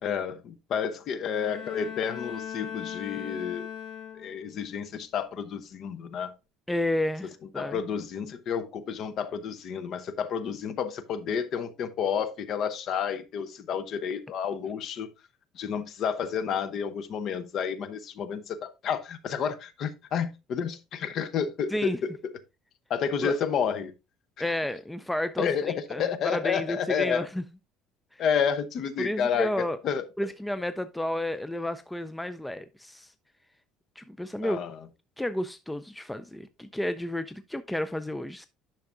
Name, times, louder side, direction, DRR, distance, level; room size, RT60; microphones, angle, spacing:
voice 1, 0.0-3.7 4.1-6.3 7.6-15.1 15.5-22.0 22.2-22.3 22.9-23.9 25.4-27.3 28.2-30.1 34.4-34.8, left 7 dB, 40° left, 0.7 m, -30 dB
Bowed string instrument, 1.2-4.6, left 8 dB, 80° left, 1.2 m, -38 dB
voice 2, 6.7-7.8 21.7-22.0 23.2-23.3 24.4-27.4 28.1-28.2 29.0-29.8 30.2-33.1 34.0-34.6 35.2-38.5, left 1 dB, 5° left, 0.3 m, -31 dB
10.5 x 5.6 x 2.5 m
cardioid pair, 165°, 0 cm